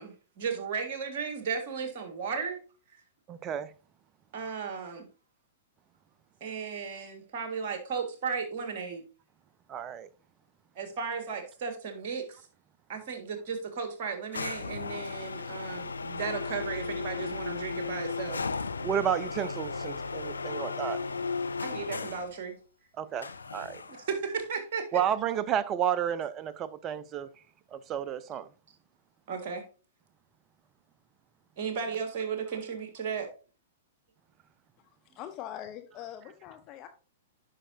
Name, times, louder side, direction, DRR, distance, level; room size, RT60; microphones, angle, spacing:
voice 1, 0.0-2.6 4.3-5.1 6.4-9.0 10.8-12.4 12.9-18.4 21.6-22.6 23.9-25.0 29.3-29.6 31.6-33.3, right 6 dB, 50° right, 1.8 m, -35 dB
voice 2, 3.3-3.7 9.7-10.1 18.8-21.0 23.0-23.8 24.9-27.3 27.7-28.5, right 9 dB, 30° right, 0.5 m, -31 dB
sound 1, 14.3-22.4 23.2-24.1, left 4 dB, 80° left, 0.4 m, -35 dB
voice 3, 35.1-36.9, left 11 dB, 35° left, 0.7 m, -42 dB
9.8 x 5.6 x 2.7 m
figure-of-eight pair, 105°, 0 cm